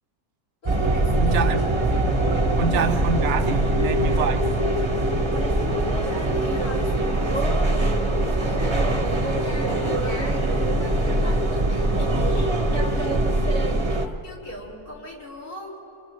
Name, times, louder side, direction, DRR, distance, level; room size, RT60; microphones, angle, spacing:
voice 1, 0.6-1.6 5.7-15.8, left 1 dB, 75° left, -4 dB, 4.7 m, -41 dB
sound 1, 0.6-14.1, right 1 dB, 25° right, 0.9 m, -22 dB
voice 2, 1.2-1.7 2.6-4.4, right 5 dB, 55° right, 9 dB, 0.9 m, -25 dB
29.0 x 28.5 x 3.1 m, 2.8 s
omnidirectional pair, 1.6 m